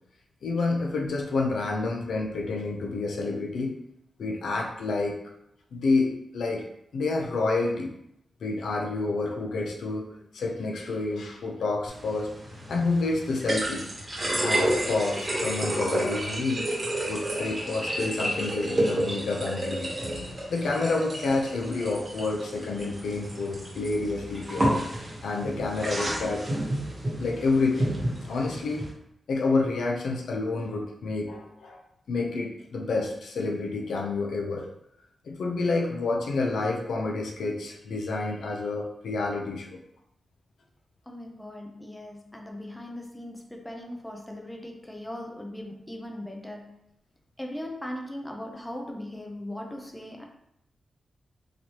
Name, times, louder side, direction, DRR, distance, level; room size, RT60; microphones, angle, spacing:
voice 1, 0.4-3.7 4.2-5.2 5.7-6.6 6.9-7.9 8.4-12.3 12.7-13.9 14.4-16.7 17.1-19.9 20.5-24.7 25.2-26.5 27.2-28.0 28.3-28.9 29.3-31.8 32.1-34.7 35.2-39.8, left 3 dB, 85° left, 1 dB, 0.6 m, -29 dB
sound 1, 11.9-28.9, right 1 dB, 25° right, 1.0 m, -31 dB
voice 2, 41.1-46.8 47.4-50.3, left 1 dB, 5° left, 2 dB, 0.4 m, -39 dB
4.1 x 3.1 x 2.9 m, 0.77 s
wide cardioid pair, 165°, 0 cm